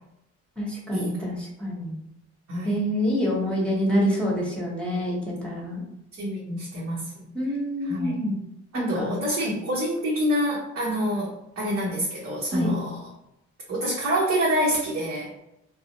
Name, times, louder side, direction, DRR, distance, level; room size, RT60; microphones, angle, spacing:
voice 1, 0.6-2.0 2.6-5.8 7.3-8.4 8.7-9.5 12.5-12.7, equal, 5° left, -4 dB, 1.0 m, -27 dB
voice 2, 2.5-2.8 6.1-7.3 7.8-8.3 8.7-13.1 13.7-15.3, equal, 60° right, -6 dB, 0.9 m, -27 dB
3.4 x 2.0 x 2.9 m, 0.83 s
cardioid pair, 90°, 30 cm